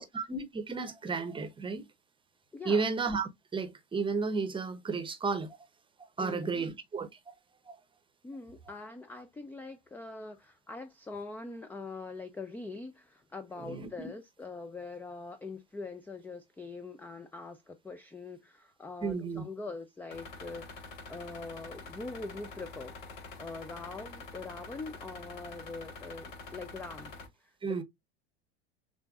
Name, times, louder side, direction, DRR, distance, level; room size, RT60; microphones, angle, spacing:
voice 1, 0.0-1.8 2.7-5.6 6.2-7.3 7.7-7.8 13.6-14.1 19.0-19.4 27.6-27.8, right 4 dB, 15° right, 0.9 m, -33 dB
voice 2, 2.5-2.9 6.2-6.7 8.2-23.0 23.4-27.1 27.4-27.8, left 3 dB, 5° left, 0.4 m, -43 dB
sound 1, 20.1-27.3, left 3 dB, 65° left, 1.5 m, -46 dB
6.7 x 2.6 x 2.3 m
figure-of-eight pair, 85°, 33 cm